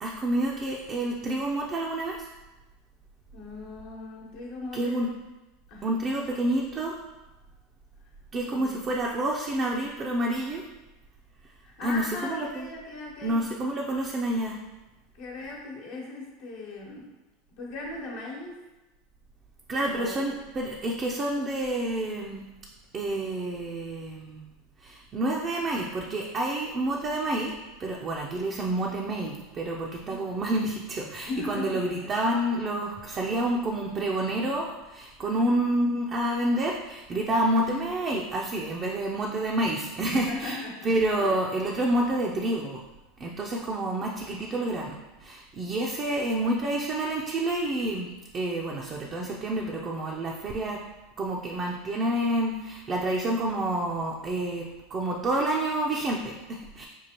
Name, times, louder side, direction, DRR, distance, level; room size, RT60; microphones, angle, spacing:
voice 1, 0.0-2.3 4.7-5.1 5.8-6.9 8.3-10.6 11.8-12.7 13.2-14.6 19.7-22.4 22.9-24.4 24.8-40.6 40.8-42.8 43.2-50.8 51.2-56.9, right 1 dB, 35° right, -2 dB, 0.5 m, -28 dB
voice 2, 3.3-5.1 5.7-5.9 8.4-8.8 11.6-13.5 15.1-17.1 17.6-18.6 19.8-20.3 30.0-30.3 31.3-32.1 35.2-35.6 40.0-40.9 41.2-41.3, left 2 dB, 65° left, -3 dB, 1.1 m, -38 dB
5.3 x 2.4 x 2.9 m, 1.1 s
hypercardioid pair, 90°, 0 cm